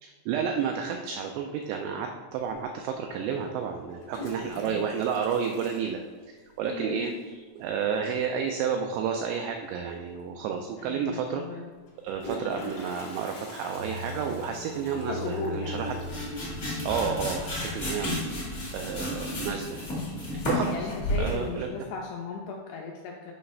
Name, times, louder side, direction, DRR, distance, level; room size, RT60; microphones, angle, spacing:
voice 1, 0.0-6.0 6.6-11.4 12.0-15.9 16.6-18.4 18.7-19.8 20.5-20.9 21.2-21.7, right 7 dB, 85° right, 4 dB, 2.4 m, -31 dB
Toilet flush, 2.5-2.6 3.8-6.6 6.9-7.0 7.2-7.3 7.6-8.0 9.7-9.8 10.2-10.3 11.8-18.5 18.8-19.2 19.7-20.2 20.6-21.6, equal, 70° left, 1.5 m, -39 dB
voice 2, 4.4-4.8 6.6-7.3 10.8-11.7 12.4-12.7 14.9-15.8 20.7-23.3, left 5 dB, 85° left, 0 dB, 2.4 m, -37 dB
sound 1, 13.8-19.0, left 1 dB, 40° right, 0.9 m, -40 dB
sound 2, 15.7-21.5, left 1 dB, 50° left, 0.8 m, -33 dB
8.0 x 3.2 x 5.4 m, 1.4 s
omnidirectional pair, 5.4 m